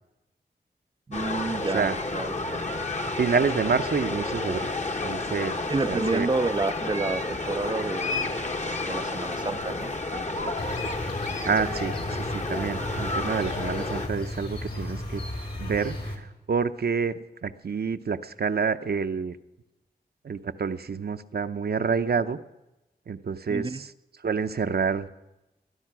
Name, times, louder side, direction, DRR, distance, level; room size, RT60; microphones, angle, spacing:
sound 1, 1.1-14.1, left 2 dB, 40° left, 1.2 m, -31 dB
voice 1, 1.1-2.6 5.7-8.6 8.9-10.5 23.5-23.8, right 3 dB, 25° right, 0.4 m, -30 dB
voice 2, 3.0-4.7 5.0-5.5 5.9-6.3 11.5-11.9 12.3-15.2 15.6-19.4 20.2-22.4 23.1-23.9 24.2-25.1, right 5 dB, 65° right, 0.7 m, -28 dB
sound 2, 10.6-16.2, left 1 dB, 65° left, 3.2 m, -34 dB
21.0 x 10.0 x 6.0 m
cardioid pair, 45°, 17 cm